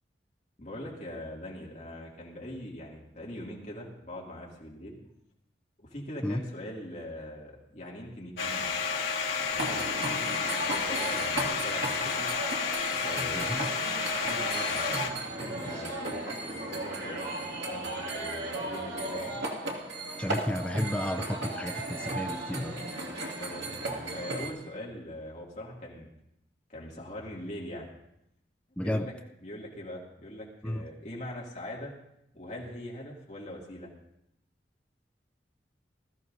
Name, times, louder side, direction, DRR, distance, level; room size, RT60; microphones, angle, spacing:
voice 1, 0.6-5.0 5.8-8.7 9.3-10.0 10.6-12.3 13.0-13.5 14.0-19.4 23.4-26.1 26.7-27.9 28.8-29.1 29.4-31.9 32.3-33.9, left 1 dB, 40° left, -3 dB, 2.4 m, -42 dB
Domestic sounds home sounds, 8.4-15.1, left 5 dB, 75° left, 1.8 m, -31 dB
sound 1, 9.6-24.5, right 2 dB, 80° right, 2.2 m, -35 dB
voice 2, 13.3-13.7 20.2-22.8 28.8-29.1 30.6-30.8, left 1 dB, 5° left, 5 dB, 0.4 m, -32 dB
20.0 x 14.0 x 2.7 m, 0.80 s
head